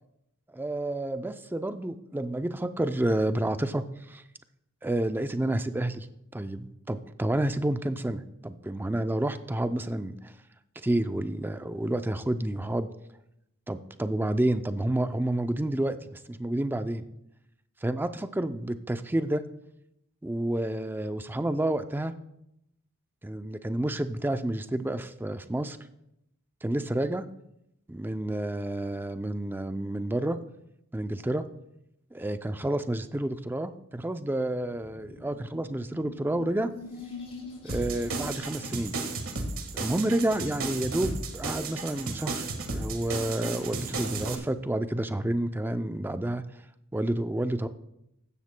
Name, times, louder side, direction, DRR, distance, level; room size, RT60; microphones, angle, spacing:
voice 1, 0.5-4.2 4.8-6.1 6.3-10.3 10.8-12.9 13.7-17.0 17.8-19.4 20.2-22.1 23.2-25.8 26.6-27.2 27.9-30.4 30.9-31.5 32.1-36.7 37.6-38.9 39.7-46.4 46.9-47.7, right 1 dB, 10° right, 10 dB, 0.4 m, -29 dB
sound 1, 34.6-39.9, left 3 dB, 25° left, 4.5 m, -45 dB
sound 2, 37.7-44.3, right 3 dB, 65° right, 1.6 m, -34 dB
15.5 x 12.5 x 2.2 m, 0.83 s
head